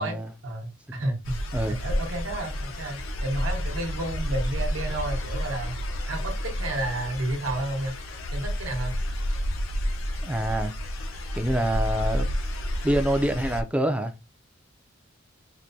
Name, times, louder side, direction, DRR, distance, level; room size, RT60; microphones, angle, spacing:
voice 1, 0.0-1.4 1.7-5.8 6.1-7.9 8.3-9.0, right 1 dB, 70° right, 0.9 m, -31 dB
sound 1, 1.2-13.6, equal, 85° left, 0.7 m, -30 dB
voice 2, 10.2-10.7 11.3-12.3 12.8-14.1, right 1 dB, 5° right, 0.4 m, -26 dB
4.4 x 2.1 x 2.6 m
head